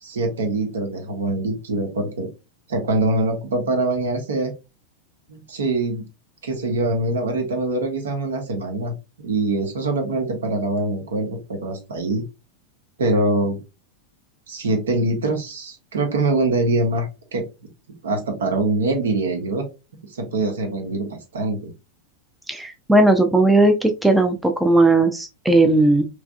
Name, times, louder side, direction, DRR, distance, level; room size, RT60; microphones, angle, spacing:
voice 1, 0.0-2.3 2.7-4.5 5.3-6.0 6.4-12.2 13.0-13.6 14.5-17.4 18.0-19.6 20.1-21.7, right 2 dB, 65° right, 4 dB, 1.0 m, -23 dB
voice 2, 22.5-26.1, right 2 dB, 5° right, 5 dB, 0.5 m, -17 dB
3.4 x 3.1 x 2.5 m, 0.27 s
figure-of-eight pair, 90°, 0 cm